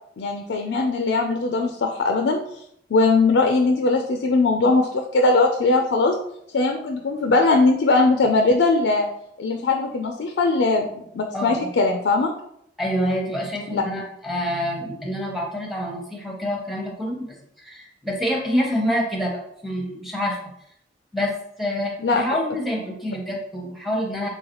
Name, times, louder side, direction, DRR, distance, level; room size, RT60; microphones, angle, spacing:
voice 1, 0.2-2.4 2.9-6.2 6.5-9.1 9.4-12.3 13.7-13.8 22.0-22.2, left 3 dB, 90° left, 3 dB, 0.4 m, -20 dB
voice 2, 11.3-11.7 12.8-17.3 17.6-19.3 19.6-20.4 21.1-24.3, equal, ahead, 0 dB, 0.8 m, -27 dB
3.9 x 3.6 x 2.9 m, 0.72 s
head